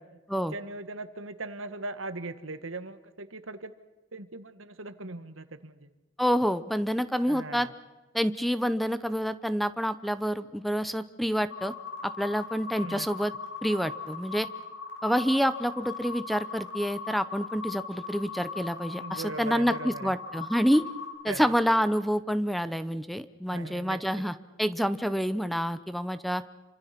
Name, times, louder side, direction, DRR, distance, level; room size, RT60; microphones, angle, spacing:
voice 1, 0.0-3.7 4.1-5.9 7.2-7.7 12.8-13.1 19.0-20.1 21.3-21.5 23.5-24.0, right 2 dB, 85° right, 11 dB, 1.6 m, -39 dB
voice 2, 6.2-7.7 8.1-11.7 12.0-13.3 13.6-14.5 15.0-20.9 21.2-26.4, equal, ahead, 13 dB, 0.7 m, -28 dB
sound 1, 11.5-21.2, left 5 dB, 70° left, 6.8 m, -39 dB
28.0 x 25.5 x 6.0 m, 1.1 s
head